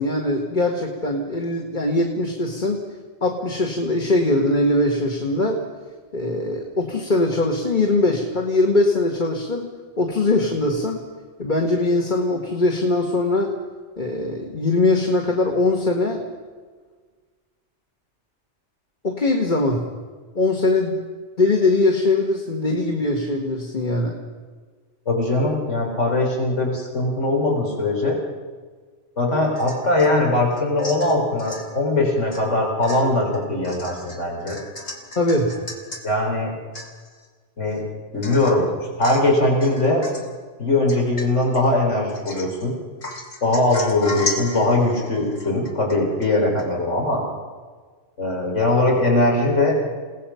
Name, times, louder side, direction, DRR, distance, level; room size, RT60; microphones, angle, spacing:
voice 1, 0.0-2.8 3.2-5.6 6.1-11.0 11.4-13.6 14.0-16.2 19.0-19.9 20.4-21.0 21.4-24.2 35.2-35.6, left 2 dB, 40° left, 1 dB, 1.9 m, -21 dB
voice 2, 25.1-28.2 29.2-34.6 36.0-36.5 37.6-37.8 38.1-38.7 39.0-40.1 40.6-42.7 43.4-47.2 48.2-49.7, left 2 dB, 70° left, -1 dB, 4.5 m, -21 dB
Domestic sounds home sounds / Chink clink / Drip, 29.6-30.1 30.5-31.7 32.3-32.5 32.8-36.0 36.4-36.5 36.7-37.3 37.7-37.8 38.2-38.6 39.0-39.3 39.6-40.3 40.9-41.6 42.1-42.6 43.0-46.3 46.6-46.7, left 2 dB, 90° left, 3.2 m, -35 dB
29.5 x 18.0 x 5.7 m, 1.5 s
omnidirectional pair, 1.3 m